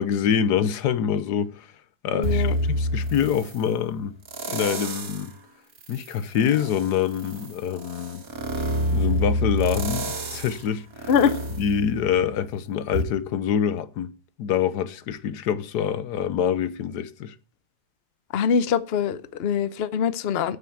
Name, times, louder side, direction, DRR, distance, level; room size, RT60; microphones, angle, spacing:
voice 1, 0.0-1.7 2.0-4.2 4.5-5.3 5.9-8.2 8.6-11.1 11.6-17.3, left 8 dB, 85° left, 1.4 m, -26 dB
voice 2, 2.1-2.6 11.1-11.4 18.3-20.6, left 7 dB, 50° left, 0.8 m, -23 dB
sound 1, 2.2-3.6 4.2-5.3 5.8-12.5 12.9-13.0, equal, 60° right, 2.1 m, -28 dB
9.0 x 7.7 x 7.3 m
omnidirectional pair, 1.7 m